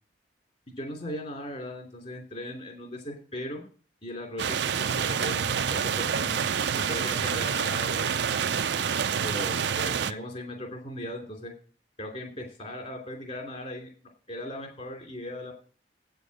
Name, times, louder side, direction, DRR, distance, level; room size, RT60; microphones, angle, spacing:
voice 1, 0.8-3.6 4.0-5.6 6.0-6.4 6.7-8.5 9.2-11.5 12.0-13.9 14.3-15.5, left 1 dB, 40° left, 1 dB, 2.9 m, -38 dB
sound 1, 4.4-10.1, right 7 dB, 75° right, 0.5 m, -27 dB
8.5 x 6.9 x 7.7 m, 0.42 s
head